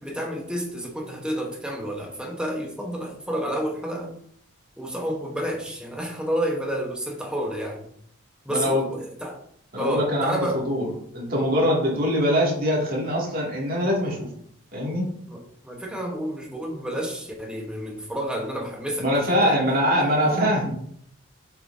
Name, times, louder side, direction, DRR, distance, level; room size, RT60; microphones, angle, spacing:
voice 1, 0.0-4.2 4.8-7.9 8.4-9.4 9.8-10.7 15.3-19.1 19.4-19.5 20.2-20.5, equal, 5° right, 0 dB, 1.0 m, -30 dB
voice 2, 8.5-8.8 9.7-10.9 11.1-14.3 14.7-15.1 19.0-20.7, equal, 40° right, -4 dB, 2.3 m, -23 dB
7.5 x 5.8 x 2.7 m, 0.66 s
head